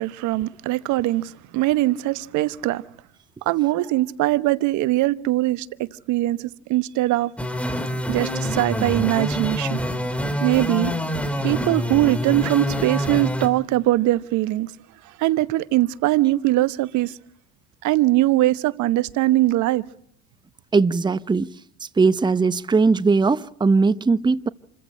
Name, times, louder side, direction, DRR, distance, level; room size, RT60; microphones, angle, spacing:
voice 1, 0.0-2.8 3.4-5.7 5.9-7.3 8.1-9.8 10.4-10.9 11.4-14.7 15.0-17.2 17.8-19.8, right 16 dB, 65° right, 1.1 m, -21 dB
sound 1, 7.4-13.5, equal, 5° left, 4.6 m, -26 dB
voice 2, 20.7-21.5 22.0-24.5, right 4 dB, 15° right, 0.8 m, -19 dB
28.0 x 15.0 x 8.9 m
supercardioid pair, 85°, 32 cm